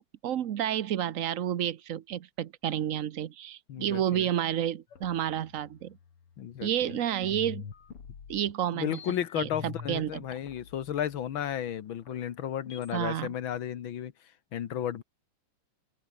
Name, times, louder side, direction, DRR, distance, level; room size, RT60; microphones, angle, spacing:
voice 1, 0.0-6.0 6.6-7.6 8.3-9.0 9.4-10.2 12.9-13.3, right 10 dB, 65° right, 0.8 m, -30 dB
voice 2, 3.7-4.3 6.4-7.0 8.7-14.1 14.5-15.0, left 10 dB, 65° left, 2.0 m, -33 dB
sound 1, 4.9-6.8 7.2-13.0, left 6 dB, 90° left, 3.4 m, -46 dB
open air
omnidirectional pair, 2.4 m